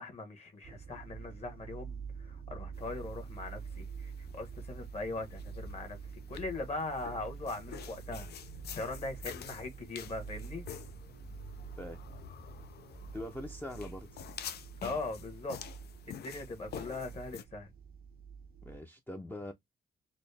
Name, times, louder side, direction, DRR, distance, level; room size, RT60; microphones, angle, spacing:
voice 1, 0.0-6.0 6.3-8.3 8.8-10.7 14.8-15.6 16.1-17.7, left 2 dB, 40° left, 1.3 m, -40 dB
sound 1, 0.6-18.8, right 6 dB, 60° right, 0.5 m, -47 dB
sound 2, 2.7-17.4, left 9 dB, 70° left, 0.5 m, -49 dB
voice 2, 13.1-14.1 18.6-19.5, left 1 dB, 10° left, 0.5 m, -42 dB
4.0 x 2.1 x 3.4 m
wide cardioid pair, 125°, 17 cm